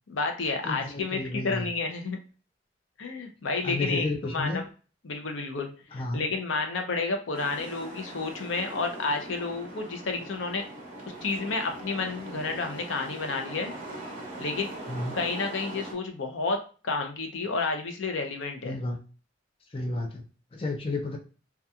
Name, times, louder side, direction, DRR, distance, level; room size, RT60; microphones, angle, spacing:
voice 1, 0.1-2.2 3.0-4.6 5.0-10.6 11.2-13.7 14.4-14.7 15.1-16.6 16.8-18.8, left 3 dB, 85° left, 4 dB, 0.6 m, -30 dB
voice 2, 0.6-1.6 3.6-4.6 5.9-6.2 14.9-15.2 18.6-19.0 19.7-20.2 20.5-21.2, left 2 dB, 30° left, 2 dB, 0.4 m, -31 dB
sound 1, 7.3-15.9, right 1 dB, 40° right, 0.9 m, -41 dB
2.8 x 2.3 x 2.3 m, 0.37 s
head